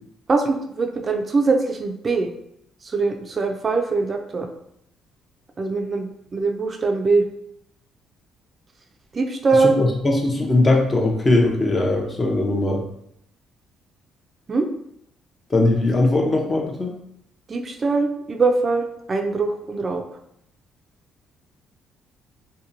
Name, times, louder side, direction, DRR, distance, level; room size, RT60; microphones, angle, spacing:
voice 1, 0.3-2.3 2.8-4.5 5.6-7.2 9.1-9.7 14.5-14.7 17.5-20.0, right 3 dB, 35° right, 3 dB, 0.3 m, -22 dB
voice 2, 9.6-12.8 15.5-16.9, left 2 dB, 30° left, 1 dB, 0.5 m, -20 dB
2.8 x 2.2 x 2.5 m, 0.74 s
cardioid pair, 85°, 0 cm